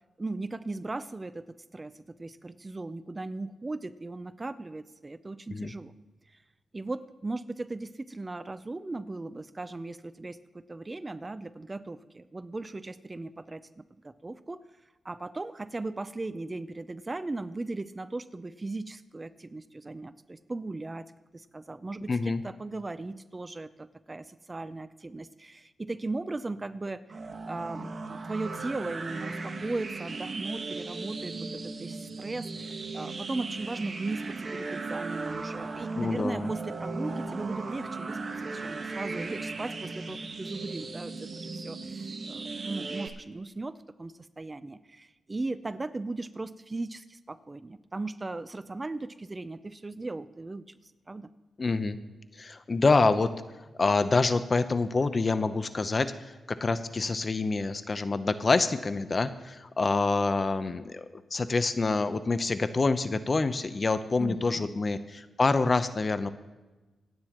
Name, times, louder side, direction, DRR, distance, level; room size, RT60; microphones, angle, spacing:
voice 1, 0.2-1.4 1.7-1.9 2.2-5.9 6.7-14.6 15.0-21.1 21.3-27.0 27.5-31.5 31.8-50.8 51.1-51.3 64.2-64.8, right 2 dB, 25° right, 14 dB, 0.6 m, -37 dB
voice 2, 22.1-22.4 36.0-36.5 51.6-52.0 52.3-53.3 53.8-66.3, left 3 dB, 40° left, 11 dB, 0.8 m, -26 dB
sound 1, 27.1-43.1, right 3 dB, 50° right, 1.4 m, -37 dB
26.0 x 9.4 x 3.0 m, 1.2 s
cardioid pair, 70°, 0 cm